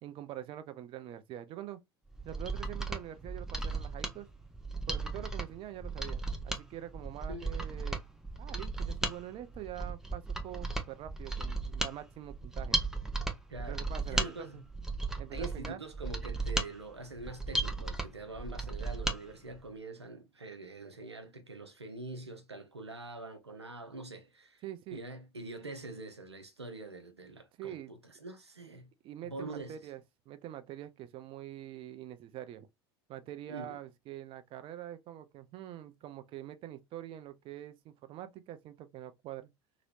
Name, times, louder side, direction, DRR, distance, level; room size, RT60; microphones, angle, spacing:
voice 1, 0.0-1.8 2.3-4.3 4.9-8.0 8.4-12.8 13.7-14.7 15.2-15.8 24.6-25.0 27.6-27.9 29.0-30.0 30.3-32.7 33.1-39.5, right 12 dB, 40° right, 0.6 m, -45 dB
Mechanisms, 2.1-19.2 19.5-19.6, right 2 dB, 5° right, 0.7 m, -36 dB
voice 2, 13.5-13.8 14.1-14.6 15.3-24.6 24.9-28.9 29.2-29.8 33.5-33.8, right 2 dB, 90° right, 0.8 m, -44 dB
3.0 x 2.9 x 2.6 m
figure-of-eight pair, 75°, 14 cm